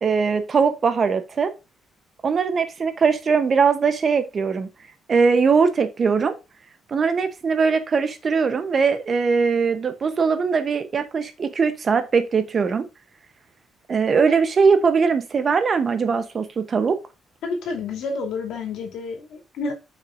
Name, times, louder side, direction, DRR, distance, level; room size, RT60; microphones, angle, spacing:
voice 1, 0.0-1.5 2.2-4.7 5.1-6.3 6.9-12.8 13.9-17.0, right 5 dB, 30° right, 0.9 m, -20 dB
voice 2, 17.4-19.7, left 4 dB, 75° left, 2.6 m, -29 dB
6.6 x 5.7 x 2.6 m
cardioid pair, 175°, 0 cm